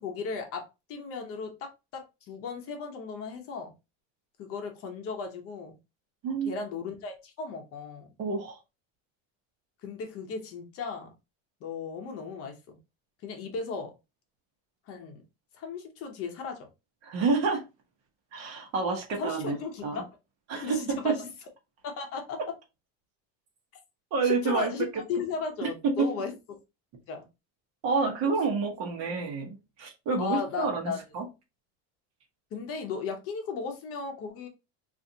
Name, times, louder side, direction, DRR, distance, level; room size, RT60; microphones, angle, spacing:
voice 1, 0.0-3.7 4.4-5.7 6.4-8.1 9.8-11.1 11.6-12.8 13.2-13.9 14.9-15.2 15.5-16.7 19.2-20.1 20.5-21.3 21.8-22.4 24.2-26.3 27.1-27.3 30.2-31.0 32.5-34.5, left 5 dB, 40° left, 4 dB, 0.8 m, -36 dB
voice 2, 6.2-6.5 8.2-8.6 17.0-17.6 18.3-19.6 19.8-20.0 20.5-21.2 24.1-24.7 25.6-26.1 27.8-31.2, right 4 dB, 50° right, 2 dB, 1.0 m, -28 dB
3.8 x 2.5 x 2.7 m, 0.26 s
cardioid pair, 175°, 34 cm